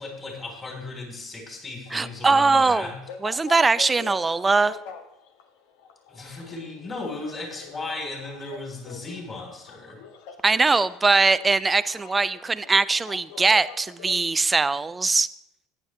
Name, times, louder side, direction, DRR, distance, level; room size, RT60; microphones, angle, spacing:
voice 1, 0.0-3.0 6.1-10.0, left 3 dB, 25° left, 1 dB, 3.7 m, -36 dB
sound 1, 1.9-14.2, left 6 dB, 70° left, 1.1 m, -44 dB
voice 2, 1.9-2.9 3.2-4.8 10.4-15.3, right 3 dB, 20° right, 16 dB, 0.5 m, -21 dB
14.5 x 9.9 x 3.3 m, 0.81 s
hypercardioid pair, 80°, 0 cm